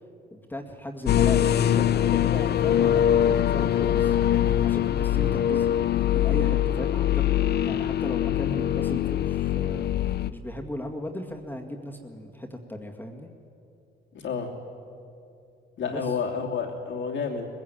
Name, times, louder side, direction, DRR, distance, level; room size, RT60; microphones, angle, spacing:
voice 1, 0.3-4.2 4.6-13.3 15.9-16.1, left 1 dB, 10° left, 2 dB, 2.1 m, -37 dB
sound 1, 1.1-10.3, left 11 dB, 55° left, 0.6 m, -23 dB
voice 2, 14.1-14.5 15.8-17.5, left 5 dB, 70° left, 1 dB, 3.0 m, -30 dB
20.5 x 16.0 x 8.8 m, 2.5 s
cardioid pair, 90°, 20 cm